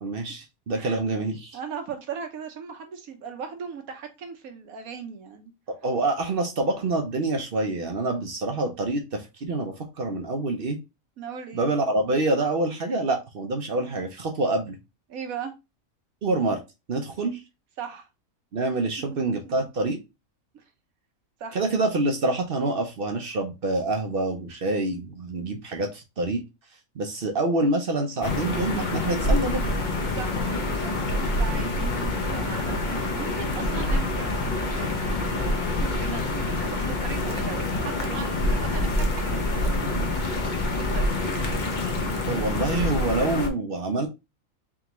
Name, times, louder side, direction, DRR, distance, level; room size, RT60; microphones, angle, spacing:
voice 1, 0.0-1.6 5.7-10.8 11.5-14.8 16.2-16.6 16.9-17.4 18.5-20.0 21.5-26.4 27.0-29.6 42.3-44.1, right 2 dB, 55° right, 0.7 m, -26 dB
voice 2, 1.5-5.5 11.2-11.7 15.1-15.5 17.8-18.1 19.0-19.7 20.5-20.6 21.4-21.6 30.1-40.1 40.9-41.1, right 6 dB, 80° right, 1.3 m, -38 dB
sound 1, 28.2-43.5, left 2 dB, 40° left, 0.7 m, -26 dB
3.6 x 3.5 x 3.0 m
omnidirectional pair, 1.5 m